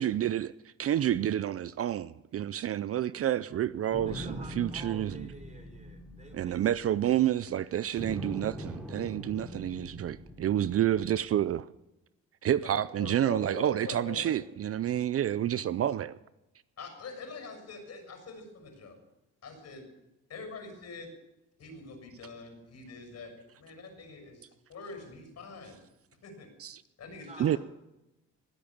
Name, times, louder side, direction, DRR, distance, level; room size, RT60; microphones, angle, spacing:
voice 1, 0.0-5.3 6.3-11.7 12.4-16.2 26.6-26.8 27.4-27.6, right 11 dB, 50° right, 0.5 m, -29 dB
sound 1, 3.9-7.5 8.0-11.3, equal, 5° right, 3.0 m, -43 dB
voice 2, 4.0-6.9 27.2-27.6, right 2 dB, 25° right, 4.1 m, -50 dB
voice 3, 12.6-14.3 16.8-19.0 19.4-19.9 20.3-21.1 21.6-23.3 23.6-25.8 26.2-26.5 27.0-27.6, left 4 dB, 60° left, 6.7 m, -44 dB
20.0 x 8.5 x 7.2 m
cardioid pair, 90°, 30 cm